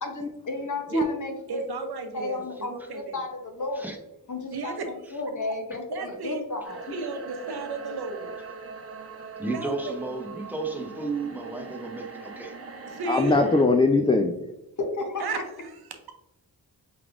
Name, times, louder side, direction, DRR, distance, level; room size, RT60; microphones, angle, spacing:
voice 1, 0.0-1.6 2.1-3.8 4.3-4.7 5.1-6.8 14.8-15.2, left 2 dB, 50° left, 4 dB, 0.9 m, -33 dB
voice 2, 1.5-2.4 2.7-3.2 4.5-4.9 5.9-6.4 6.9-8.3 9.4-9.9 12.9-13.4 15.2-16.1, right 4 dB, 75° right, 5 dB, 0.7 m, -34 dB
sound 1, 6.6-13.6, right 4 dB, 35° right, 0.7 m, -41 dB
voice 3, 9.4-12.5, right 3 dB, 5° right, 2 dB, 0.8 m, -33 dB
voice 4, 13.1-14.3, left 3 dB, 15° left, 3 dB, 0.3 m, -21 dB
4.9 x 3.3 x 2.5 m, 0.87 s
wide cardioid pair, 70°, 39 cm